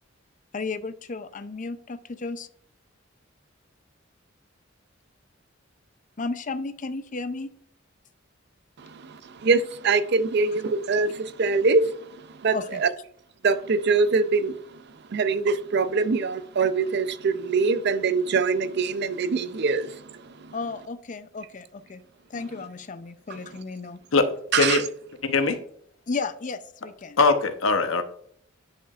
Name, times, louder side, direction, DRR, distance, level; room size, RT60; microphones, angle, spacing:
voice 1, 0.5-2.5 6.2-7.5 12.5-12.8 20.5-22.0 22.3-24.0 26.1-27.2, left 3 dB, 40° left, 0.5 m, -33 dB
voice 2, 8.8-12.9 13.4-14.8 15.1-20.5 24.5-24.8, right 4 dB, 55° right, 0.5 m, -24 dB
voice 3, 25.2-25.6 27.2-28.0, left 3 dB, 90° left, 0.9 m, -21 dB
10.0 x 5.0 x 2.4 m
head